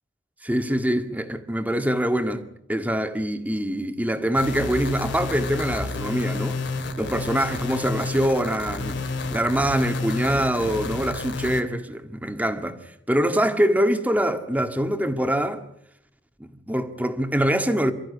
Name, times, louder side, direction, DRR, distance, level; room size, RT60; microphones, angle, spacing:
voice 1, 0.4-6.6 7.0-9.0 9.3-12.8 13.1-15.6 16.4-17.9, right 1 dB, 10° right, 2.0 m, -24 dB
sound 1, 4.3-11.6, left 3 dB, 70° left, 2.6 m, -30 dB
29.0 x 14.0 x 9.8 m
head